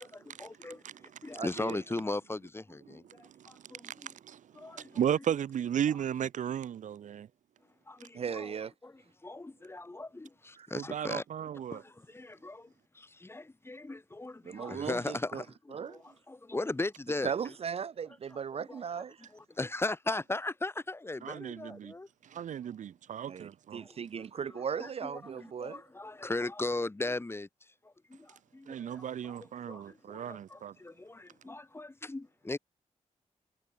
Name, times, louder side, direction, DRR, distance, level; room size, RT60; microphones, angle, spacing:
voice 1, 0.0-4.1 4.5-5.2 7.9-8.5 8.8-11.2 11.7-17.5 18.3-18.8 19.3-22.1 23.7-32.6, left 2 dB, 20° left, 1.7 m, -38 dB
voice 2, 1.4-1.8 8.1-8.7 10.6-10.7 14.4-15.4 15.7-16.0 17.2-19.3 23.3-25.8, right 7 dB, 55° right, 0.5 m, -37 dB
voice 3, 3.2-7.3 10.7-11.8 21.2-21.9 22.2-23.8 28.7-30.7, right 9 dB, 85° right, 0.8 m, -35 dB
wide cardioid pair, 105°, 13 cm